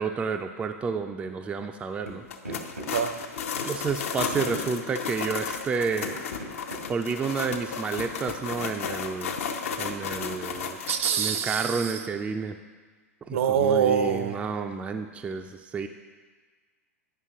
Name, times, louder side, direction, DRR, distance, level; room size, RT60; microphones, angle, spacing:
voice 1, 0.0-2.2 3.6-6.1 6.9-9.3 9.8-10.8 11.2-12.6 13.3-15.9, right 5 dB, 15° right, 6 dB, 0.3 m, -30 dB
sound 1, 2.1-2.2 2.4-2.9 3.8-3.9 4.3-4.7 6.0-6.8 7.3-7.4 8.0-8.9, right 1 dB, 90° right, 1.7 m, -39 dB
sound 2, 2.2-11.5, left 6 dB, 65° left, 0.6 m, -34 dB
voice 2, 10.9-12.0 13.3-14.4, right 8 dB, 60° right, 8 dB, 0.6 m, -25 dB
9.4 x 5.4 x 3.5 m, 1.5 s
figure-of-eight pair, 95°, 8 cm